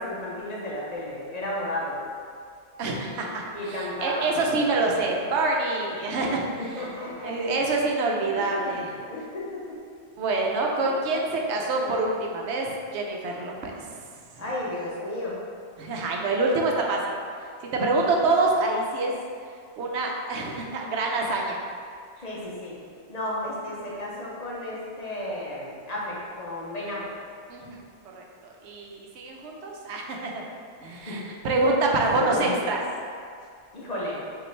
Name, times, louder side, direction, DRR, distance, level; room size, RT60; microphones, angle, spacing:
voice 1, 0.0-2.0 3.2-4.3 6.6-7.6 8.4-8.8 9.1-9.8 10.8-10.9 14.4-15.4 22.2-22.8 23.1-27.1 30.9-31.3 31.6-31.7 32.0-32.6 33.7-34.2, left 1 dB, 45° left, -6 dB, 0.7 m, -33 dB
voice 2, 2.8-6.5 7.2-8.9 10.2-13.9 15.8-17.0 17.6-19.1 19.8-21.6 27.5-27.8 28.2-28.3 28.6-30.4 30.8-32.8, right 2 dB, 90° right, 0 dB, 0.9 m, -26 dB
5.3 x 2.5 x 3.2 m, 2.2 s
omnidirectional pair, 1.1 m